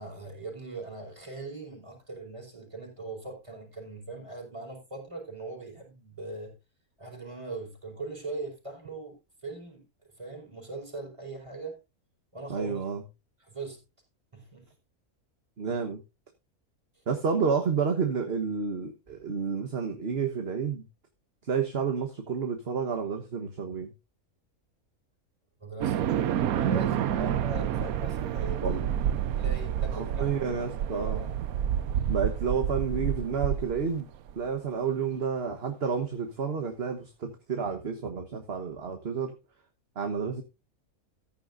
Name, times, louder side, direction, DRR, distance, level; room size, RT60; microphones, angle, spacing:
voice 1, 0.0-6.5 7.0-9.2 9.4-9.8 10.2-11.8 12.3-12.8 13.4-13.8 14.3-14.7 16.9-17.0 19.1-19.2 25.6-28.9 29.3-30.5 30.8-31.3, right 3 dB, 20° right, 5.0 m, -40 dB
voice 2, 12.5-13.0 15.6-16.0 17.1-20.8 21.4-23.9 27.2-27.4 28.6-28.8 29.9-31.3 32.1-34.1 34.3-39.3 39.9-40.4, right 6 dB, 45° right, 1.4 m, -30 dB
sound 1, 25.8-34.3, right 9 dB, 75° right, 1.1 m, -29 dB
14.5 x 10.0 x 2.6 m
omnidirectional pair, 1.6 m